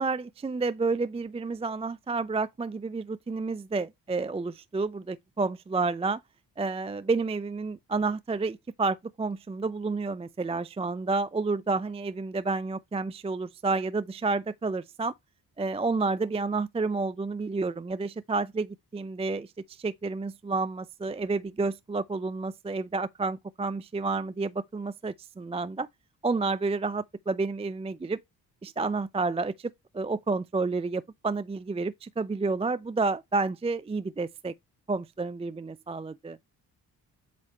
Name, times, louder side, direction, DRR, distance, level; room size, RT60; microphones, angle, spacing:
voice 1, 0.0-6.2 6.6-15.1 15.6-25.9 26.2-28.2 28.6-34.5 34.9-36.4, right 3 dB, 15° right, 0.4 m, -30 dB
8.2 x 3.2 x 4.3 m
supercardioid pair, 55°, 40 cm